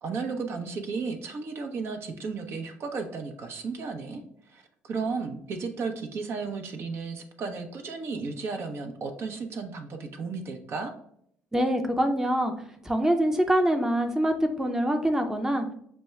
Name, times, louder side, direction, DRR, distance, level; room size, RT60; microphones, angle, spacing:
voice 1, 0.0-4.2 4.5-10.9, right 4 dB, 55° right, 4 dB, 0.7 m, -34 dB
voice 2, 11.5-12.5 12.8-15.7, equal, 10° right, 4 dB, 0.6 m, -24 dB
6.1 x 2.3 x 3.1 m, 0.68 s
hypercardioid pair, 60°, 5 cm